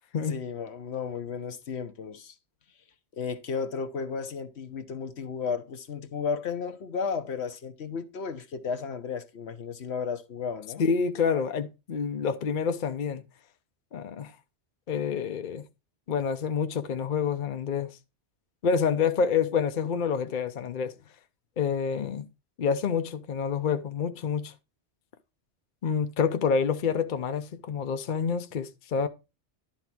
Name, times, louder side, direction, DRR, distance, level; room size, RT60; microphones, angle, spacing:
voice 1, 0.3-2.3 3.1-10.9, left 5 dB, 70° left, 1.2 m, -34 dB
voice 2, 10.8-13.2 13.9-14.3 14.9-15.6 16.1-18.0 18.6-20.9 21.6-22.2 22.6-24.5 25.8-29.1, left 6 dB, 50° left, 0.8 m, -27 dB
11.5 x 4.0 x 6.0 m
omnidirectional pair, 1.2 m